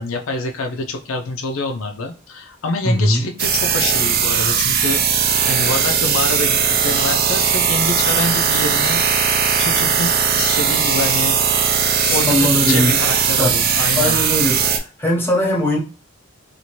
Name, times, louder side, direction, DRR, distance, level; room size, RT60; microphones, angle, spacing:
voice 1, 0.0-5.0 5.4-9.0 9.6-11.4 12.1-14.2, left 3 dB, 80° left, 4 dB, 0.5 m, -26 dB
voice 2, 2.8-3.3 12.0-13.0 13.4-13.5 14.0-14.6 15.0-15.8, left 1 dB, 10° left, -3 dB, 0.8 m, -19 dB
sound 1, 3.4-14.8, right 7 dB, 45° right, 0.4 m, -18 dB
2.8 x 2.5 x 3.0 m, 0.36 s
head